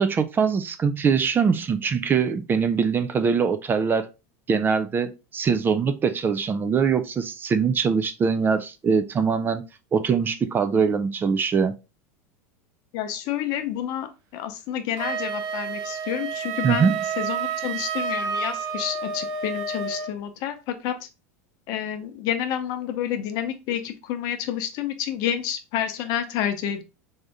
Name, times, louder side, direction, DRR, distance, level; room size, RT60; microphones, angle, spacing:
voice 1, 0.0-4.1 4.5-9.6 9.9-11.8 16.6-17.0, right 6 dB, 25° right, 0.4 m, -22 dB
voice 2, 12.9-14.1 14.3-21.0 21.7-26.8, left 10 dB, 55° left, 0.7 m, -29 dB
Wind instrument woodwind instrument, 15.0-20.2, right 5 dB, 55° right, 0.8 m, -30 dB
3.6 x 2.7 x 3.4 m
hypercardioid pair, 95°, 8 cm